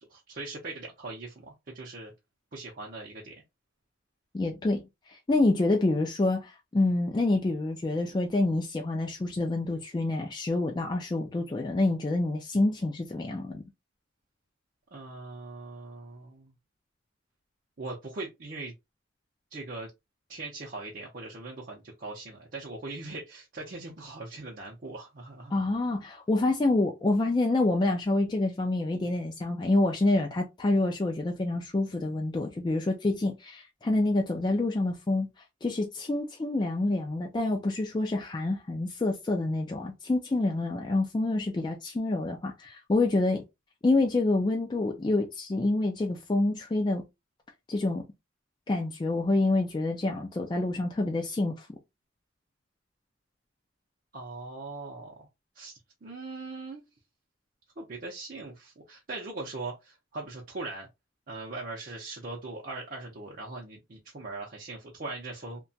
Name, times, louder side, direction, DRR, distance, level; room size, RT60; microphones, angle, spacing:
voice 1, 0.1-2.1 2.5-3.3 14.9-16.5 17.8-18.7 19.5-19.9 20.3-25.6 54.1-55.3 55.6-56.8 57.8-60.9 61.3-65.6, right 3 dB, 45° right, 0.6 m, -40 dB
voice 2, 4.3-13.6 25.5-35.3 35.6-43.4 43.8-47.0 47.7-48.0 48.7-51.7, left 2 dB, 20° left, 0.3 m, -27 dB
2.8 x 2.2 x 2.6 m
head